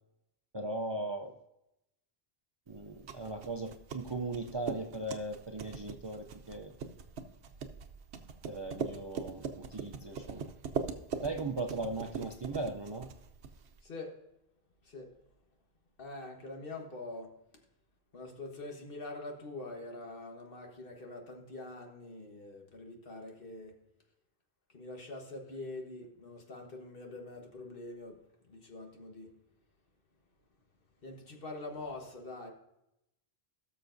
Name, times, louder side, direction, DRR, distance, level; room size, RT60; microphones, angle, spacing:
voice 1, 0.5-1.3 2.7-6.7 8.5-10.5 11.2-13.1, right 2 dB, 30° right, 3 dB, 0.5 m, -38 dB
sound 1, 2.8-13.8, right 6 dB, 90° right, 1.0 m, -41 dB
voice 2, 13.8-14.2 14.8-15.1 16.0-17.3 18.1-23.8 24.7-28.2 28.4-29.3 31.0-32.5, left 2 dB, 60° left, 1 dB, 1.6 m, -44 dB
17.5 x 6.7 x 2.6 m, 0.86 s
omnidirectional pair, 1.1 m